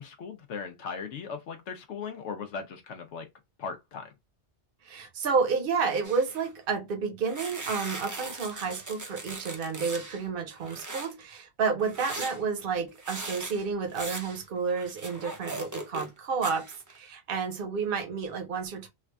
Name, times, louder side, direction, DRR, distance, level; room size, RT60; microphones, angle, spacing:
voice 1, 0.0-3.3 3.6-4.1, left 5 dB, 80° left, 0.9 m, -38 dB
voice 2, 4.8-18.9, right 5 dB, 55° right, 0.9 m, -30 dB
sound 1, 6.0-6.5 7.3-10.2 10.6-11.1 11.8-16.2 16.4-17.0, right 2 dB, 25° right, 0.5 m, -39 dB
3.2 x 2.4 x 3.3 m
omnidirectional pair, 1.2 m